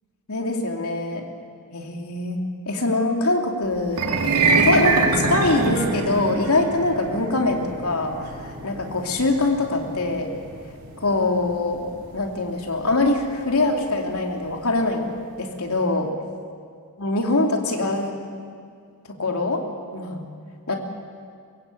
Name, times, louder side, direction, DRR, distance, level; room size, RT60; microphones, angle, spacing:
voice 1, 0.3-1.3 1.7-10.3 11.0-16.1 17.0-18.2 19.1-19.6 19.9-20.2 20.7-20.8, left 2 dB, 80° left, 2 dB, 3.0 m, -23 dB
sound 1, 3.9-14.2, right 4 dB, 85° right, 2.6 m, -26 dB
23.0 x 22.5 x 8.5 m, 2.2 s
head